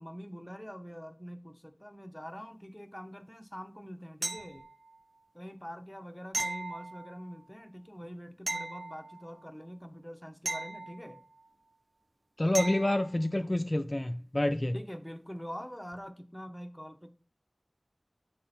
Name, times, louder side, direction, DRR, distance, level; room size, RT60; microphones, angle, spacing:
voice 1, 0.0-4.6 5.3-11.2 14.7-17.1, equal, 10° left, 0.8 m, -44 dB
sound 1, 4.2-5.0 6.3-7.4 8.5-9.5 10.4-11.5 12.5-13.2 15.9-16.0, right 2 dB, 85° right, 0.5 m, -37 dB
voice 2, 12.4-14.7, left 1 dB, 35° left, 0.4 m, -28 dB
7.8 x 3.7 x 4.2 m
wide cardioid pair, 40°, 0 cm